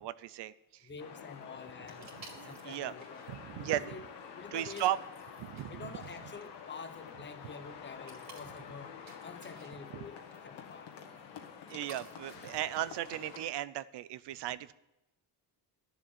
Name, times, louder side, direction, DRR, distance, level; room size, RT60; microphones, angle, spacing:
voice 1, 0.0-0.9 2.2-2.9 3.3-4.0 4.5-5.0 5.4-5.9 11.7-14.7, right 14 dB, 75° right, 0.7 m, -36 dB
voice 2, 0.8-2.2 2.4-4.0 4.4-4.9 5.7-8.9 9.2-10.9, left 5 dB, 25° left, 0.9 m, -47 dB
sound 1, 1.0-13.5, left 7 dB, 75° left, 1.5 m, -49 dB
sound 2, 1.9-13.5, right 3 dB, 40° right, 2.6 m, -58 dB
11.5 x 7.1 x 9.0 m
cardioid pair, 145°, 41 cm